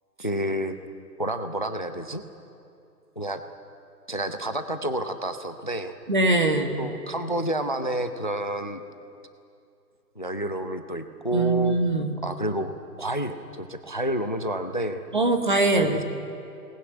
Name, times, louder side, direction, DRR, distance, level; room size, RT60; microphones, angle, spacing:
voice 1, 0.2-0.8 1.2-2.2 3.2-3.4 4.1-5.9 6.8-8.8 10.2-11.8 12.2-15.0 15.7-16.0, right 1 dB, 30° left, 10 dB, 0.6 m, -29 dB
voice 2, 6.1-6.7 11.3-12.1 15.1-16.0, right 2 dB, 30° right, 5 dB, 1.5 m, -22 dB
22.0 x 20.0 x 9.6 m, 2.6 s
hypercardioid pair, 175°, 49 cm